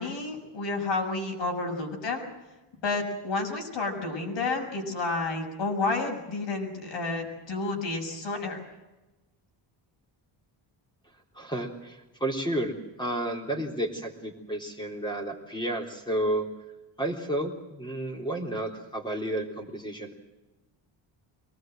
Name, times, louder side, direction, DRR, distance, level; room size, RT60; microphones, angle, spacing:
voice 1, 0.0-2.2 2.8-8.6, left 3 dB, 65° left, 1 dB, 6.7 m, -30 dB
voice 2, 11.3-16.5 17.0-20.1, right 1 dB, 10° left, 1 dB, 3.6 m, -31 dB
24.0 x 19.5 x 7.8 m, 1.0 s
cardioid pair, 140°, 47 cm